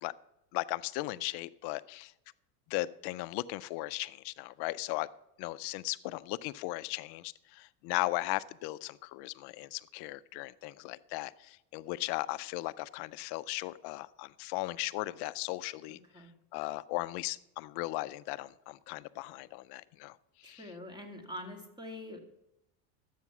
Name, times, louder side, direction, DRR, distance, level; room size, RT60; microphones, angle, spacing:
voice 1, 0.5-2.1 2.7-5.1 5.4-16.0 16.5-20.2 20.4-20.6, left 19 dB, 55° left, 17 dB, 0.6 m, -37 dB
voice 2, 20.4-22.2, left 1 dB, 10° right, 4 dB, 2.4 m, -44 dB
12.0 x 8.4 x 5.9 m, 0.85 s
supercardioid pair, 100°, 49 cm